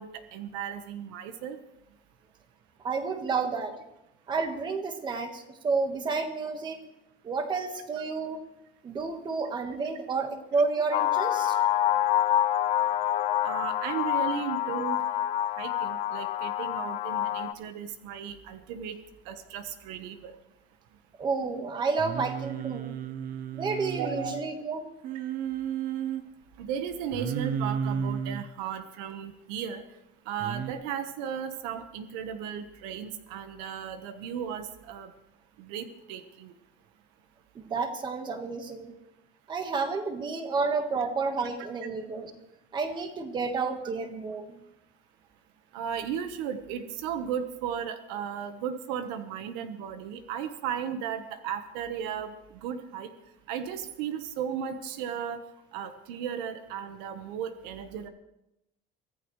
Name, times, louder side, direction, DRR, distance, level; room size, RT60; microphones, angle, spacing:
voice 1, 0.0-1.6 13.4-15.0 15.6-19.0 19.2-20.3 24.0-24.3 26.6-29.8 30.3-35.1 35.6-36.5 45.7-52.3 52.6-53.1 53.5-55.4 55.7-58.1, right 8 dB, 90° right, 8 dB, 1.3 m, -35 dB
voice 2, 2.8-3.7 4.3-6.8 7.2-8.4 8.8-11.6 21.2-23.0 23.5-24.9 37.5-38.9 39.5-42.3 42.7-44.6, right 4 dB, 25° right, 6 dB, 1.5 m, -30 dB
sound 1, 10.9-17.5, left 12 dB, 35° left, 0.6 m, -27 dB
Singing, 22.0-24.4 25.0-26.2 27.1-28.4 30.4-30.7, right 8 dB, 45° right, 1.0 m, -33 dB
24.0 x 14.5 x 3.2 m, 0.88 s
cardioid pair, 170°, 20 cm